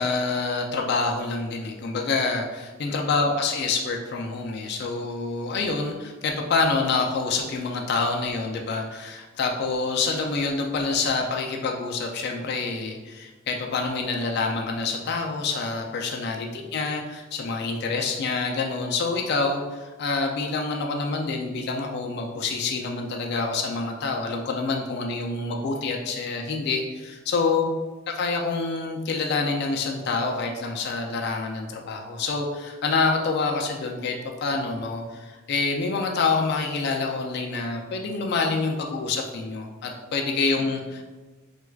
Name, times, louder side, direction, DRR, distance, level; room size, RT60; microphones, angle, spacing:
voice 1, 0.0-27.7 28.1-41.1, left 4 dB, 50° left, 1 dB, 0.3 m, -27 dB
4.4 x 2.3 x 2.3 m, 1.2 s
head